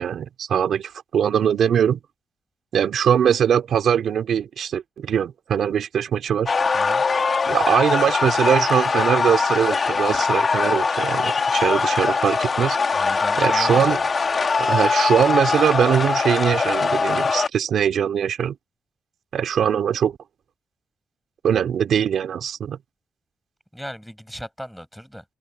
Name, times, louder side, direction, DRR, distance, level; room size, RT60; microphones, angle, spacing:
voice 1, 0.0-2.0 2.7-6.5 7.5-12.8 13.4-14.0 14.6-18.5 19.3-20.2 21.4-22.8, right 8 dB, 60° right, 3.4 m, -21 dB
sound 1, 6.5-17.5, left 4 dB, 30° left, 3.3 m, -22 dB
voice 2, 12.9-13.9 23.7-25.2, equal, ahead, 7.2 m, -35 dB
cardioid pair, 130°, 0 cm